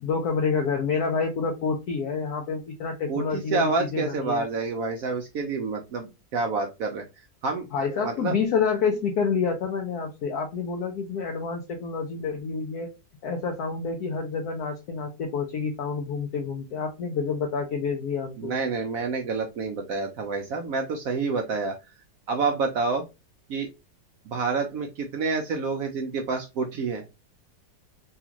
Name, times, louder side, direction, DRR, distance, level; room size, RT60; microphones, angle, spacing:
voice 1, 0.0-4.5 7.7-12.9 13.2-18.5, left 5 dB, 65° left, 1 dB, 1.1 m, -28 dB
voice 2, 3.1-7.0 7.4-7.7 8.0-8.3 18.4-21.8 22.3-23.0 23.5-23.7 24.3-27.0, right 4 dB, 70° right, 4 dB, 0.8 m, -28 dB
3.4 x 2.4 x 2.8 m, 0.25 s
omnidirectional pair, 2.0 m